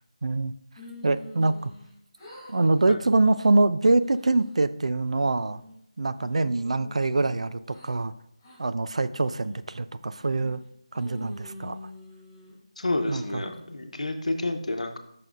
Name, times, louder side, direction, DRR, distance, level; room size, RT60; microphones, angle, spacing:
voice 1, 0.2-0.5 1.0-1.7 2.5-5.6 6.0-8.1 8.6-10.6 10.9-11.8 13.1-13.4, right 2 dB, 65° right, 14 dB, 0.4 m, -24 dB
sound 1, 0.8-1.9 2.2-2.7 3.1-3.4 3.9-4.5 5.0-5.8 6.2-7.9 8.4-8.6 9.1-9.6 10.2-10.6 10.9-12.5 13.0-13.6, left 1 dB, 15° left, 2.4 m, -45 dB
voice 2, 12.8-15.0, left 2 dB, 75° left, 6 dB, 0.9 m, -29 dB
8.9 x 5.8 x 2.4 m, 0.72 s
figure-of-eight pair, 175°, 4 cm